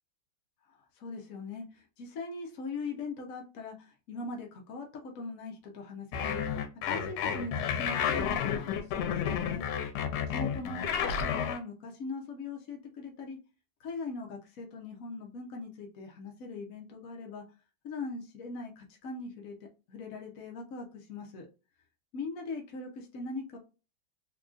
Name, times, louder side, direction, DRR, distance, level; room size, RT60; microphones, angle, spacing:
voice 1, 0.7-9.7 10.3-13.4 13.8-17.4 17.8-19.5 19.9-21.5 22.1-23.6, left 3 dB, 65° left, 1 dB, 0.8 m, -41 dB
sound 1, 6.1-11.6, left 7 dB, 90° left, 1.6 m, -31 dB
3.7 x 2.9 x 2.4 m, 0.31 s
omnidirectional pair, 2.3 m